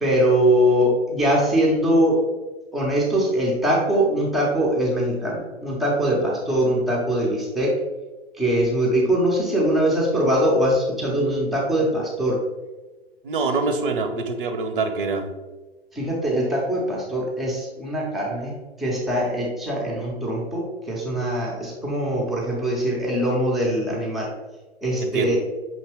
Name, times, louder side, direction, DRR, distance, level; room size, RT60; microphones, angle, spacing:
voice 1, 0.0-2.2 2.7-7.7 8.4-12.4 15.9-18.5 18.8-24.3 24.8-25.4, equal, ahead, -4 dB, 0.5 m, -22 dB
voice 2, 13.2-15.2 25.0-25.3, right 4 dB, 55° right, 6 dB, 0.7 m, -25 dB
5.8 x 2.9 x 2.9 m, 1.2 s
figure-of-eight pair, 110°, 32 cm